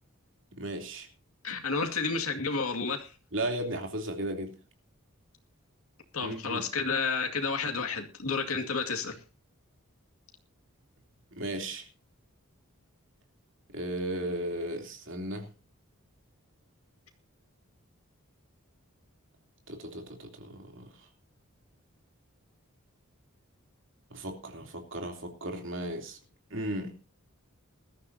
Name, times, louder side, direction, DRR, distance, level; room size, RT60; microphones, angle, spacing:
voice 1, 0.6-1.1 3.3-4.5 6.2-6.7 11.4-11.8 13.7-15.5 19.7-20.9 24.1-26.2 26.5-27.0, right 1 dB, 60° right, 3.2 m, -35 dB
voice 2, 1.4-3.1 6.1-9.2, left 4 dB, 80° left, 2.3 m, -31 dB
21.0 x 13.5 x 2.8 m
head